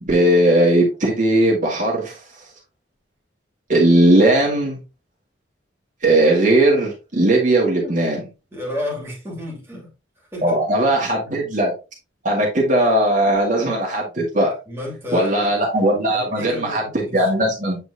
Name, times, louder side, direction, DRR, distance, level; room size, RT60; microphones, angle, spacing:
voice 1, 0.0-2.2 3.7-4.8 6.0-8.2 10.4-11.7 12.2-14.6 15.1-17.8, right 1 dB, 40° right, 1.9 m, -18 dB
voice 2, 8.5-9.9 10.3-10.9 11.2-11.4 14.7-15.5 16.1-17.3, left 1 dB, 10° right, 2.6 m, -32 dB
8.2 x 4.3 x 2.7 m
head